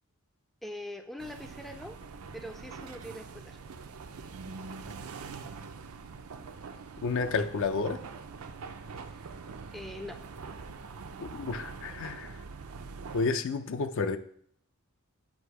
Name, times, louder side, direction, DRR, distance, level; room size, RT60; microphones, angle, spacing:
voice 1, 0.6-2.0 2.3-3.6 9.7-10.2, left 1 dB, ahead, 6 dB, 0.4 m, -42 dB
sound 1, 1.2-13.3, right 4 dB, 85° right, 0.5 m, -44 dB
voice 2, 7.0-8.0 11.2-12.3 13.1-14.2, left 4 dB, 65° left, 10 dB, 0.5 m, -30 dB
8.2 x 2.8 x 4.7 m, 0.62 s
head